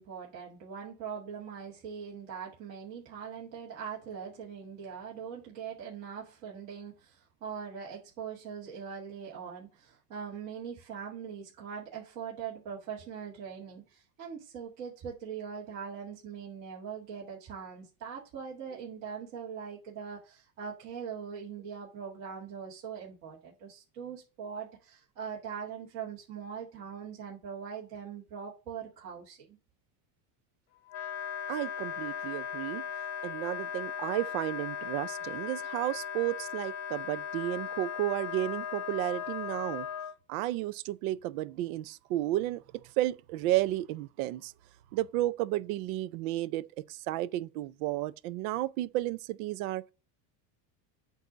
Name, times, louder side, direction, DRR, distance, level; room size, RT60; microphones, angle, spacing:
voice 1, 0.0-29.6, right 7 dB, 40° right, 1.9 m, -42 dB
Wind instrument woodwind instrument, 30.9-40.1, left 8 dB, 35° left, 0.9 m, -37 dB
voice 2, 31.5-32.9 33.2-39.9 40.3-42.6 43.0-44.5 44.9-49.8, right 15 dB, 60° right, 0.6 m, -32 dB
8.2 x 2.8 x 6.0 m
cardioid pair, 170°, 47 cm